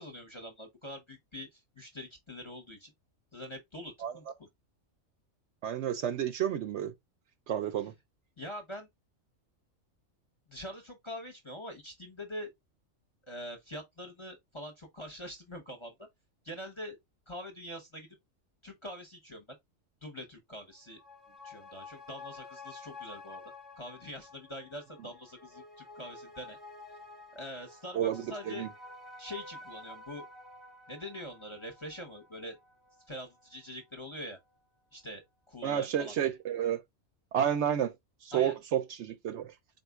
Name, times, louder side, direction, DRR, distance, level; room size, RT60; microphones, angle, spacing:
voice 1, 0.0-2.9 3.3-4.5 8.4-8.9 10.5-12.5 13.3-15.9 16.4-17.0 17.3-18.1 18.6-19.4 20.0-21.0 21.4-23.4 23.8-26.6 27.3-28.7 29.2-30.2 30.9-32.6 33.1-34.4 34.9-36.1 38.3-38.5, equal, 25° left, 0.7 m, -44 dB
voice 2, 5.6-6.9 7.5-7.9 27.9-28.7 35.6-36.8 37.3-37.9 38.2-39.5, right 9 dB, 65° right, 0.8 m, -30 dB
sound 1, 20.7-33.6 33.9-34.0, left 2 dB, ahead, 0.9 m, -50 dB
4.1 x 3.9 x 2.3 m
omnidirectional pair, 1.4 m